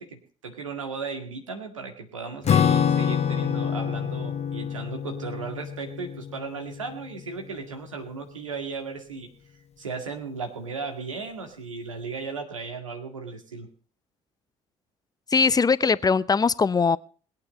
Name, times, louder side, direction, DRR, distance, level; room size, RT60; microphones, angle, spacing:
voice 1, 0.0-9.3 9.8-13.7, right 4 dB, 90° right, 4 dB, 2.2 m, -36 dB
Acoustic guitar / Strum, 2.4-7.2, left 8 dB, 40° left, 1.2 m, -26 dB
voice 2, 15.3-17.0, left 5 dB, 25° left, 18 dB, 0.7 m, -21 dB
21.0 x 8.8 x 5.2 m, 0.41 s
figure-of-eight pair, 55°, 16 cm